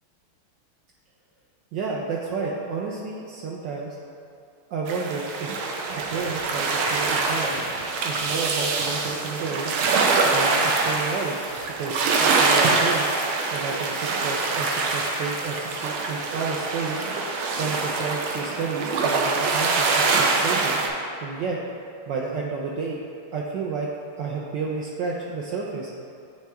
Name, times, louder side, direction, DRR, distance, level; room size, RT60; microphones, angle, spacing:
voice 1, 1.7-4.0 4.7-5.7 6.1-7.6 8.0-9.7 10.2-11.4 11.8-13.1 13.5-17.0 17.6-20.8 21.2-21.6 22.1-23.0 23.3-23.9 24.2-25.9, right 4 dB, 75° right, -3 dB, 1.1 m, -31 dB
sound 1, 4.9-20.9, right 3 dB, 90° right, 1.5 m, -24 dB
9.2 x 3.3 x 3.4 m, 2.6 s
omnidirectional pair, 2.3 m